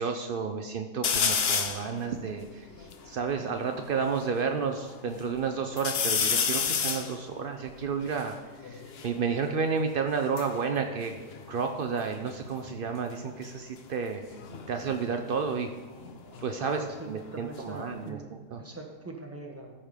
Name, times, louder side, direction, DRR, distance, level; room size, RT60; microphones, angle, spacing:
voice 1, 0.0-8.4 8.6-11.1 11.5-14.2 14.7-15.7 16.0-18.6, right 5 dB, 80° right, 5 dB, 0.4 m, -31 dB
sound 1, 1.0-1.9 2.4-2.5 2.7-4.3 4.8-5.4 5.8-9.1 10.1-12.0 12.3-12.7 14.3-16.9 17.3-18.1, left 6 dB, 50° left, 0.8 m, -31 dB
voice 2, 16.6-18.3 18.6-19.7, right 2 dB, 10° right, 1 dB, 1.2 m, -42 dB
13.5 x 5.9 x 5.0 m, 1.3 s
omnidirectional pair, 1.8 m